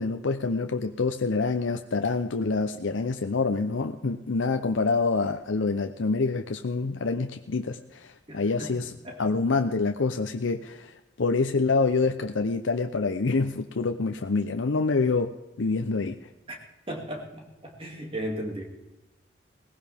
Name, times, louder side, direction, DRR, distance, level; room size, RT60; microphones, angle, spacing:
voice 1, 0.0-8.9 9.2-10.9 11.2-16.2, left 4 dB, 80° left, 7 dB, 0.7 m, -26 dB
voice 2, 8.3-9.2 16.5-16.6 16.9-18.6, equal, 30° right, 1 dB, 2.4 m, -36 dB
19.0 x 15.5 x 3.5 m, 1.0 s
head